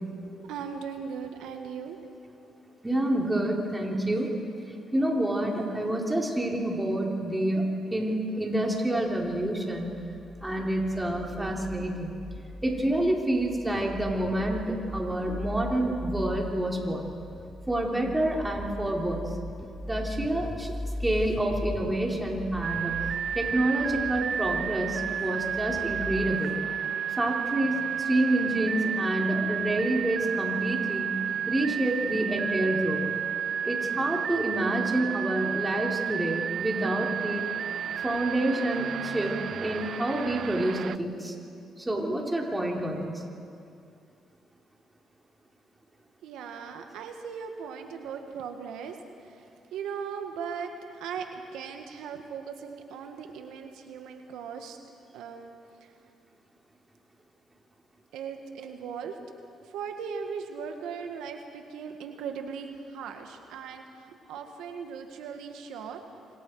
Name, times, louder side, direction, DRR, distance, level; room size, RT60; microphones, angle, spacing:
voice 1, 0.1-2.0 46.2-49.4 49.7-54.8 55.1-55.5 55.8-55.9 58.1-59.2 59.6-66.0, right 6 dB, 90° right, 5 dB, 1.6 m, -38 dB
voice 2, 2.8-4.3 4.9-9.9 10.4-12.1 12.6-17.1 17.7-19.3 19.8-20.7 21.0-22.9 23.3-26.5 27.1-31.1 31.5-33.0 33.6-37.4 38.0-41.3 41.8-43.2, right 1 dB, 15° right, -1 dB, 4.1 m, -28 dB
sound 1, 9.2-26.3, left 1 dB, 20° left, 5.7 m, -39 dB
sound 2, 22.6-41.0, right 8 dB, 60° right, 0.5 m, -32 dB
27.0 x 25.5 x 4.9 m, 2.5 s
cardioid pair, 90°, 0 cm